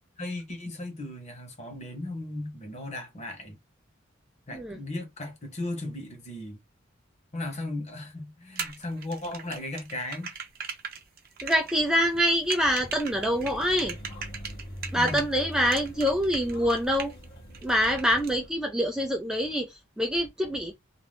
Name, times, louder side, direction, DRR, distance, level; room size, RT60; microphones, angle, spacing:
voice 1, 0.2-3.6 4.5-6.6 7.3-10.3 14.9-15.2, left 2 dB, 35° left, 1.1 m, -36 dB
sound 1, 8.6-15.3 15.6-17.2 17.5-18.3, right 6 dB, 50° right, 0.7 m, -38 dB
voice 2, 11.4-13.9 14.9-17.1 17.6-20.7, equal, 5° right, 0.4 m, -25 dB
sound 2, 12.9-18.5, equal, 55° left, 1.0 m, -43 dB
2.5 x 2.4 x 3.4 m
head